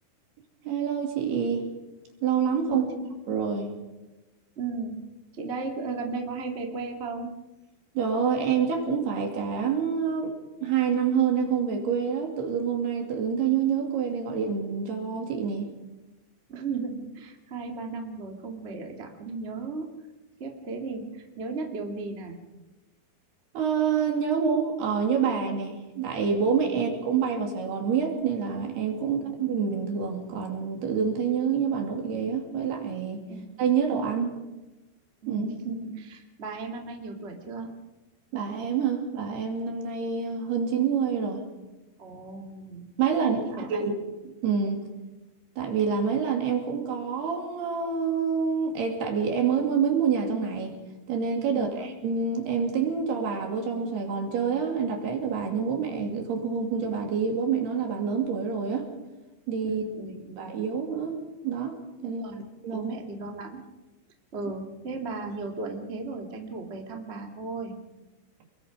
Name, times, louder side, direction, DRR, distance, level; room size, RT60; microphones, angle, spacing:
voice 1, 0.6-1.6 2.2-2.9 3.3-3.7 8.0-10.3 10.6-15.7 23.5-33.3 33.6-34.3 35.3-35.4 38.3-41.4 43.0-43.9 44.4-44.8 45.6-50.8 51.1-58.9 59.5-59.8 60.4-61.7 62.0-62.9, right 6 dB, 55° right, 2 dB, 4.4 m, -27 dB
voice 2, 2.7-3.0 4.5-5.0 5.3-7.3 16.5-19.9 20.4-22.4 29.0-29.2 33.3-33.4 35.2-37.7 42.0-42.9 43.4-43.9 51.5-51.8 59.6-60.5 62.2-62.4 62.7-63.6 64.3-67.7, right 4 dB, 35° right, 2 dB, 1.0 m, -36 dB
28.0 x 22.0 x 5.3 m, 1.1 s
omnidirectional pair, 5.8 m